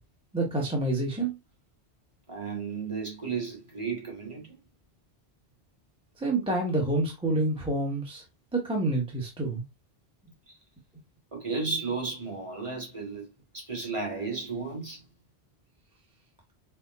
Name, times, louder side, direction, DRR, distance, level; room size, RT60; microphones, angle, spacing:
voice 1, 0.3-1.3 6.2-8.2 8.5-9.6, right 2 dB, 5° right, 0.8 m, -28 dB
voice 2, 2.3-4.6 10.5-10.6 11.3-13.3 13.5-15.0, right 4 dB, 30° right, 1.6 m, -34 dB
4.4 x 2.1 x 4.1 m
omnidirectional pair, 1.1 m